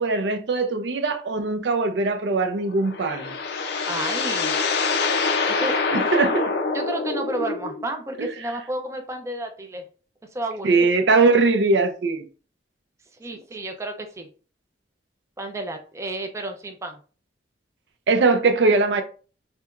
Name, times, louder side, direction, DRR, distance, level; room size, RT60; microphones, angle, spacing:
voice 1, 0.0-3.3 6.1-6.5 10.6-12.2 18.1-19.0, right 3 dB, 70° right, 0.5 m, -20 dB
sound 1, 2.6-7.8, left 4 dB, 65° left, 0.5 m, -25 dB
voice 2, 3.9-4.5 5.5-5.8 6.7-9.8 10.3-10.9 13.2-14.3 15.4-17.0, right 2 dB, 15° right, 0.4 m, -31 dB
3.3 x 2.8 x 2.4 m
head